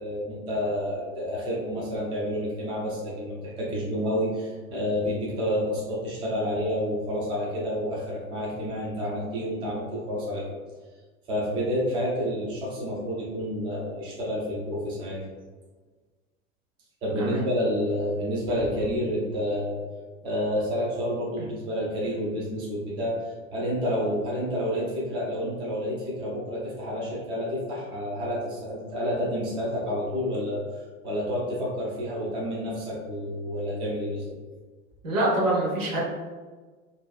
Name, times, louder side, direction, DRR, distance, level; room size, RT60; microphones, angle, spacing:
voice 1, 0.0-10.6 11.3-15.2 17.0-19.8 20.2-34.4, equal, 15° right, -5 dB, 0.4 m, -29 dB
voice 2, 35.0-36.0, right 1 dB, 65° right, -4 dB, 1.0 m, -25 dB
2.6 x 2.2 x 2.2 m, 1.3 s
figure-of-eight pair, 85°, 41 cm